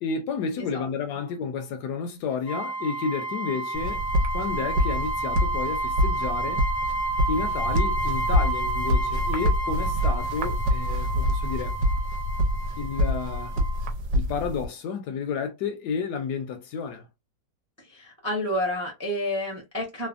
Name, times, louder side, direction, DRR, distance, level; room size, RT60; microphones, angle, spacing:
voice 1, 0.0-4.1 4.3-6.7 7.3-11.8 12.8-13.6 14.1-17.1, left 5 dB, 75° left, 1.1 m, -31 dB
sound 1, 2.5-13.9, right 2 dB, 50° left, 0.7 m, -31 dB
sound 2, 3.7-14.7, left 1 dB, 85° right, 1.3 m, -26 dB
voice 2, 17.9-20.1, left 1 dB, 20° right, 0.4 m, -29 dB
3.3 x 2.0 x 2.4 m
omnidirectional pair, 1.8 m